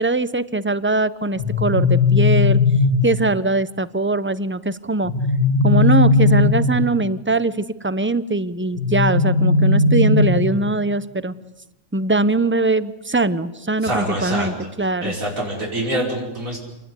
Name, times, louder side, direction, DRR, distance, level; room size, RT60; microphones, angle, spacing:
voice 1, 0.0-2.6 3.0-5.1 5.6-11.3 11.9-15.1, right 2 dB, 10° right, 15 dB, 0.6 m, -21 dB
sound 1, 1.3-3.3 5.0-7.0 8.8-10.7, left 3 dB, 60° left, 2.2 m, -17 dB
voice 2, 13.8-14.7 15.0-16.6, right 1 dB, 75° right, -2 dB, 5.8 m, -25 dB
28.0 x 20.5 x 9.7 m, 1.0 s
omnidirectional pair, 1.4 m